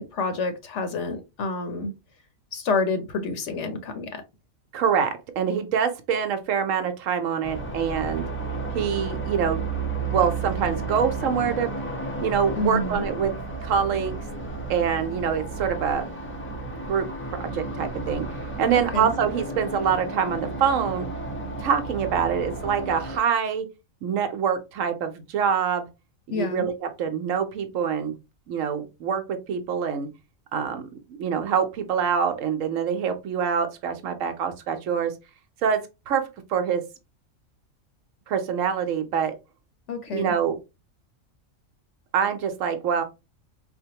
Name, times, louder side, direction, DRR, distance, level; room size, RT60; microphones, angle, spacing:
voice 1, 0.0-1.9 2.5-4.2 12.6-13.0 18.7-19.1 26.3-26.7 39.9-40.3, left 3 dB, 65° left, 0.9 m, -28 dB
voice 2, 4.7-8.3 8.7-9.7 10.0-11.7 12.2-13.4 13.6-14.2 14.7-16.1 16.9-18.2 18.6-21.1 21.6-23.7 24.0-25.9 26.3-28.1 28.5-30.1 30.5-35.1 35.6-36.8 38.3-39.4 40.1-40.6 42.1-43.0, right 7 dB, 75° right, 1.0 m, -25 dB
sound 1, 7.4-23.2, right 3 dB, 15° left, 0.4 m, -32 dB
4.2 x 2.1 x 2.8 m
omnidirectional pair, 1.4 m